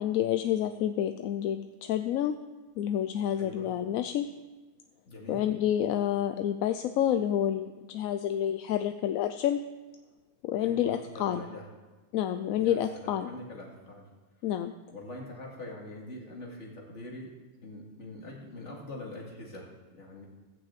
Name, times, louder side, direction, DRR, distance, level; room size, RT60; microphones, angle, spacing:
voice 1, 0.0-2.4 2.8-4.3 5.3-9.6 10.4-11.4 12.1-13.3 14.4-14.7, left 10 dB, 70° left, 9 dB, 0.9 m, -29 dB
voice 2, 3.3-3.7 5.1-5.4 10.6-11.7 12.6-14.1 14.9-17.3 17.6-20.3, left 1 dB, 50° left, -2 dB, 2.7 m, -44 dB
14.0 x 6.1 x 8.2 m, 1.2 s
omnidirectional pair, 1.6 m